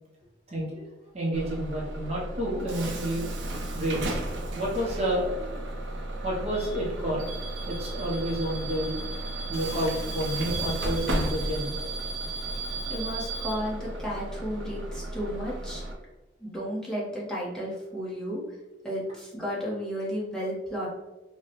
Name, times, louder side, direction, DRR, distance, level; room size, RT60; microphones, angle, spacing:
voice 1, 0.5-0.8 1.1-3.3 3.7-4.2 4.5-5.6 6.2-7.3 7.7-9.1 9.5-11.9, equal, 35° right, -4 dB, 0.7 m, -30 dB
Bus / Alarm, 1.3-15.9, right 2 dB, 80° right, 0.7 m, -33 dB
voice 2, 12.9-15.8 16.4-18.4 18.8-20.9, equal, 5° left, -7 dB, 1.0 m, -33 dB
4.7 x 2.2 x 2.9 m, 1.1 s
head